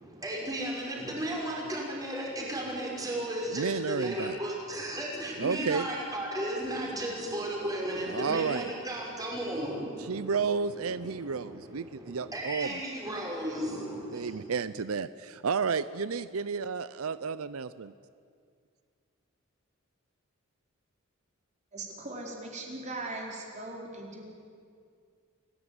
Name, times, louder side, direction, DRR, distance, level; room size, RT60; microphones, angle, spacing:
voice 1, 0.0-14.4, right 1 dB, 15° right, -2 dB, 6.1 m, -35 dB
voice 2, 3.5-4.4 5.4-5.9 8.0-8.7 10.0-12.8 14.1-17.9, right 5 dB, 90° right, 15 dB, 0.6 m, -32 dB
voice 3, 21.7-24.2, right 2 dB, 35° right, 0 dB, 4.6 m, -39 dB
29.0 x 17.0 x 9.6 m, 2.2 s
head